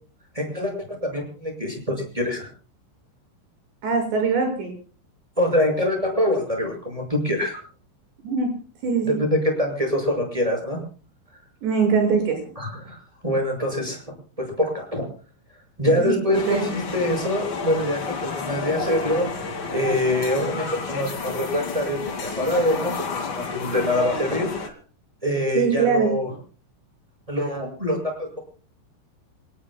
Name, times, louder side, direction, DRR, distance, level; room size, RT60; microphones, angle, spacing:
voice 1, 0.3-2.5 5.4-7.6 9.0-10.8 12.5-14.0 14.4-15.0 15.8-19.4 19.7-22.9 23.3-24.5 25.2-26.3 27.3-28.4, left 1 dB, 5° right, 1 dB, 6.4 m, -24 dB
voice 2, 3.8-4.7 8.2-8.5 8.8-9.2 11.6-12.5 16.0-16.6 25.5-26.1, right 5 dB, 60° right, 4 dB, 8.2 m, -22 dB
sound 1, 16.3-24.7, left 4 dB, 40° left, 1.8 m, -31 dB
28.0 x 18.0 x 2.3 m, 0.41 s
omnidirectional pair, 5.8 m